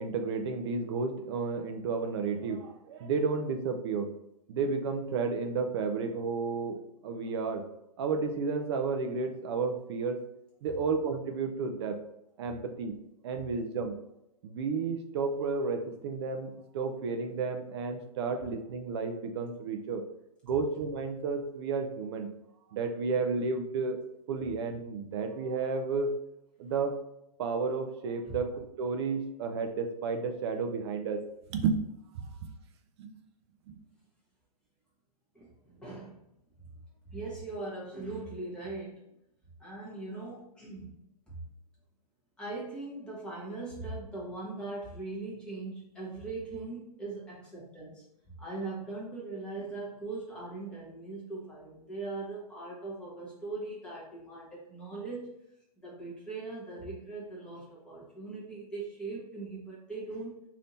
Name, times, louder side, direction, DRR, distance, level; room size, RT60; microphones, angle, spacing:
voice 1, 0.0-4.1 4.5-7.7 8.0-10.2 10.6-12.0 12.4-13.0 13.2-14.0 14.4-20.0 20.4-22.3 22.7-24.0 24.3-26.1 26.6-27.0 27.4-31.2 31.5-31.8 32.1-32.5 33.0-33.1 33.7-33.8, right 4 dB, 40° right, 5 dB, 0.4 m, -32 dB
voice 2, 35.3-36.2 36.6-36.7 37.1-39.2 39.6-41.0 41.3-41.4 42.4-55.4 55.8-60.3, right 3 dB, 5° left, -7 dB, 1.2 m, -40 dB
3.4 x 2.8 x 4.0 m, 0.81 s
hypercardioid pair, 145°, 21 cm